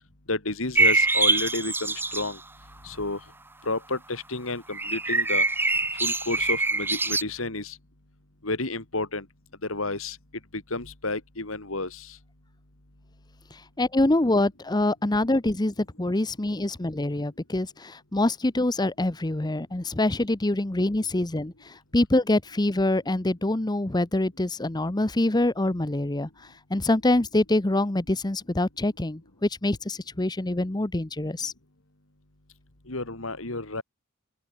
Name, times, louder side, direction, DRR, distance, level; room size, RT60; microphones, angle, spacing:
voice 1, 0.3-2.4 2.9-3.2 3.7-5.4 6.0-7.7 8.4-9.2 9.7-10.1 10.7-11.9 32.9-33.8, left 2 dB, 70° left, 3.3 m, -31 dB
sound 1, 0.7-2.3 4.7-7.2, right 3 dB, 10° right, 0.8 m, -24 dB
voice 2, 13.8-21.5 21.9-26.3 26.7-31.5, left 1 dB, 20° left, 0.9 m, -25 dB
open air
head